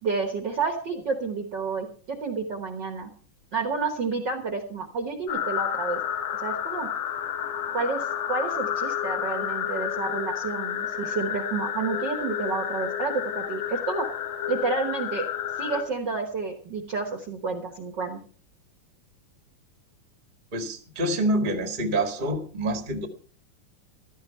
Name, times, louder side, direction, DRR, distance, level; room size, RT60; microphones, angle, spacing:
voice 1, 0.0-3.1 3.5-6.0 6.3-6.9 7.7-14.1 14.5-15.3 15.6-18.2, right 4 dB, 45° right, 5 dB, 1.5 m, -30 dB
sound 1, 5.3-15.8, left 10 dB, 65° left, 2.6 m, -30 dB
voice 2, 20.5-23.1, right 1 dB, 20° right, 6 dB, 1.3 m, -27 dB
15.0 x 12.5 x 4.4 m, 0.44 s
omnidirectional pair, 3.6 m